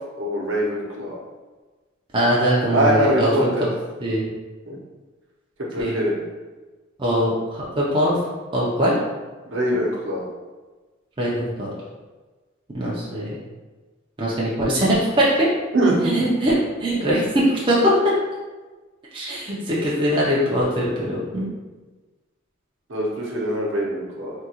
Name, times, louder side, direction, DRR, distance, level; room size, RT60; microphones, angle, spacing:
voice 1, 0.2-1.2 2.7-3.7 4.7-4.8 5.7-6.1 9.4-10.3 15.7-16.1 22.9-24.3, right 1 dB, 65° right, -4 dB, 0.8 m, -23 dB
voice 2, 2.1-3.5 4.0-4.3 5.8-6.0 7.0-8.2 8.5-9.0 11.2-11.8 12.7-13.4 14.2-15.5 16.0-18.2 19.1-21.5, equal, 25° right, -6 dB, 0.5 m, -21 dB
3.6 x 2.3 x 2.8 m, 1.3 s
head